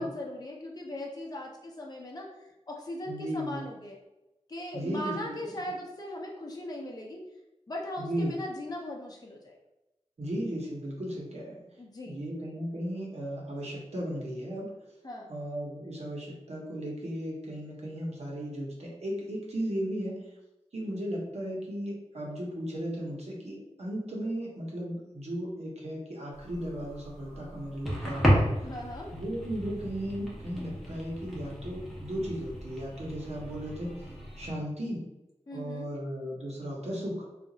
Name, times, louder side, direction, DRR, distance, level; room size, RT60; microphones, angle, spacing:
voice 1, 0.0-4.0 4.5-7.2 7.7-9.6 11.8-12.2 15.0-15.3 28.7-29.1 35.5-35.9, left 1 dB, 35° left, -1 dB, 0.6 m, -39 dB
voice 2, 3.1-3.6 4.7-5.3 8.1-8.3 10.2-11.6 12.1-14.7 15.3-20.2 20.7-28.5 29.1-33.9 34.4-35.0 35.5-37.2, equal, 65° right, -2 dB, 1.0 m, -35 dB
sound 1, 26.3-34.5, equal, ahead, 1.3 m, -33 dB
3.7 x 2.4 x 2.8 m, 0.97 s
wide cardioid pair, 60°, 12 cm